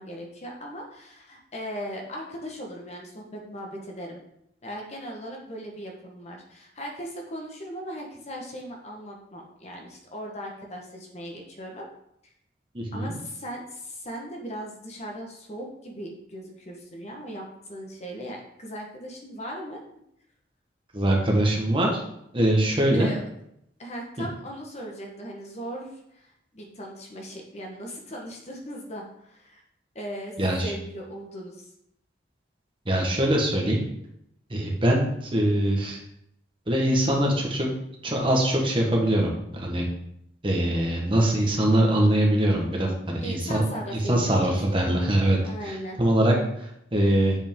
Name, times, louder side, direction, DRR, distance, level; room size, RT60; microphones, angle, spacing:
voice 1, 0.0-4.2 4.6-11.9 12.9-19.8 22.9-23.2 23.8-29.6 29.9-30.3 30.6-31.7 43.2-44.8 45.4-46.0, equal, 35° left, 0 dB, 1.2 m, -38 dB
voice 2, 12.7-13.1 20.9-22.0 22.3-23.1 30.4-30.7 32.9-33.8 34.5-36.0 36.7-37.7 38.0-39.8 40.4-43.6 43.9-45.4 45.6-47.4, right 1 dB, 30° right, -1 dB, 1.3 m, -23 dB
7.1 x 5.1 x 3.7 m, 0.76 s
head